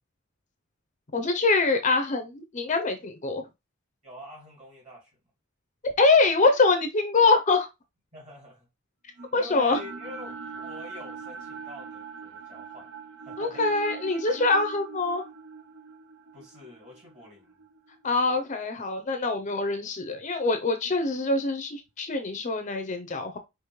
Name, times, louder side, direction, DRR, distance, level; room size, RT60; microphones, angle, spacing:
voice 1, 1.1-3.5 6.0-7.7 9.3-9.8 13.4-15.2 18.0-23.4, left 3 dB, 35° left, 0.6 m, -24 dB
voice 2, 4.0-5.1 8.1-8.7 9.3-12.9 13.2-13.7 16.3-17.6, left 1 dB, 35° right, 2.8 m, -45 dB
sound 1, 9.2-19.3, right 5 dB, 60° right, 0.5 m, -42 dB
5.0 x 3.1 x 3.1 m
head